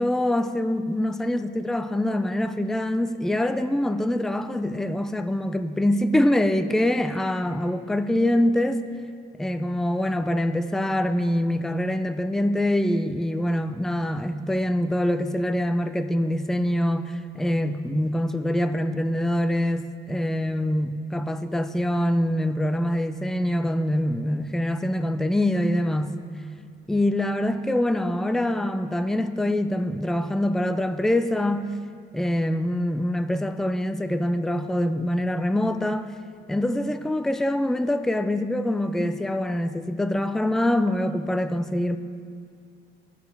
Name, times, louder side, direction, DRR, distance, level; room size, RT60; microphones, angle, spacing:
voice 1, 0.0-8.8 9.4-26.1 26.9-31.7 32.1-36.1 36.5-42.0, left 1 dB, ahead, 10 dB, 0.3 m, -24 dB
14.0 x 4.9 x 3.4 m, 2.3 s
cardioid pair, 90°, 20 cm